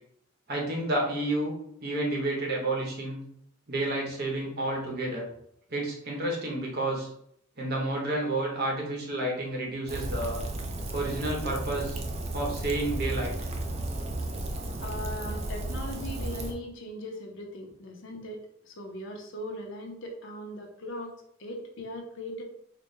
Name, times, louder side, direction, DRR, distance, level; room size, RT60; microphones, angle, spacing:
voice 1, 0.5-1.5 1.8-3.2 3.7-5.2 5.7-7.1 7.6-10.4 10.9-12.0 12.3-13.3, right 2 dB, 50° right, -2 dB, 1.0 m, -30 dB
Rain, 9.9-16.5, right 1 dB, 30° right, 0.4 m, -33 dB
voice 2, 14.8-21.1 21.4-22.4, left 1 dB, 60° left, 2 dB, 0.7 m, -39 dB
4.1 x 2.2 x 3.2 m, 0.71 s
head